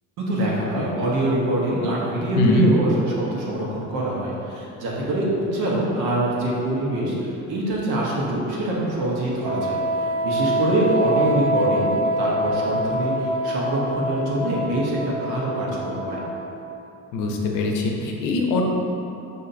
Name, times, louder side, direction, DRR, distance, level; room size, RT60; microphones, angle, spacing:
voice 1, 0.2-16.2, right 1 dB, 85° right, -4 dB, 1.0 m, -24 dB
voice 2, 2.3-2.7 17.1-18.6, left 3 dB, 85° left, 1 dB, 0.6 m, -22 dB
Wind instrument woodwind instrument, 9.4-16.8, equal, 40° right, 0.5 m, -25 dB
6.5 x 2.7 x 2.6 m, 2.9 s
cardioid pair, 105°, 30 cm